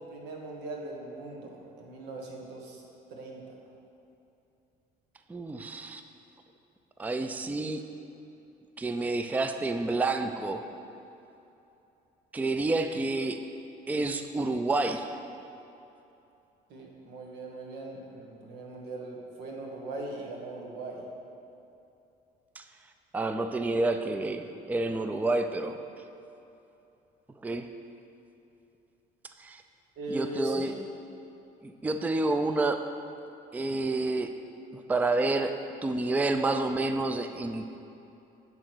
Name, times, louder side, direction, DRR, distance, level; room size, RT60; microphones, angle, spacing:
voice 1, 0.0-2.8 3.1-3.4 16.7-21.0 30.0-30.8, right 2 dB, 90° right, -1 dB, 1.4 m, -39 dB
voice 2, 5.3-6.0 7.0-7.8 8.8-10.6 12.3-13.4 13.9-15.1 22.6-22.7 23.1-25.8 27.4-27.7 29.4-29.6 30.1-30.7 31.6-32.8 33.5-34.3 34.7-35.5 35.8-37.7, right 2 dB, 10° right, 7 dB, 0.4 m, -29 dB
10.5 x 3.9 x 6.1 m, 2.8 s
cardioid pair, 110°, 17 cm